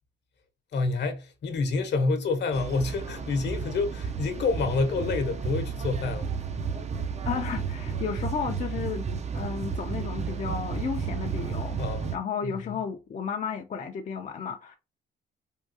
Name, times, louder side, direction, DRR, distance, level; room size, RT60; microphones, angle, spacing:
voice 1, 0.7-6.3 11.8-12.1 12.4-12.8, left 3 dB, 60° left, 0.9 m, -28 dB
sound 1, 2.5-12.2, right 6 dB, 35° right, 0.5 m, -32 dB
voice 2, 7.2-9.1 9.3-11.8 12.1-14.8, left 6 dB, 40° left, 0.5 m, -33 dB
3.6 x 2.3 x 2.6 m
cardioid pair, 90°, 20 cm